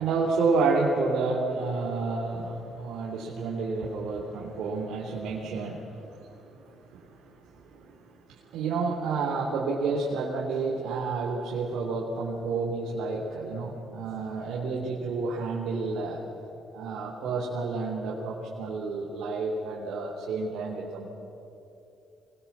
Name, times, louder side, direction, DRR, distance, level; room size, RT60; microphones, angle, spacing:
voice 1, 0.0-16.2 16.7-21.1, right 4 dB, 85° right, -4 dB, 3.4 m, -30 dB
25.5 x 21.0 x 7.4 m, 2.8 s
cardioid pair, 90°, 0 cm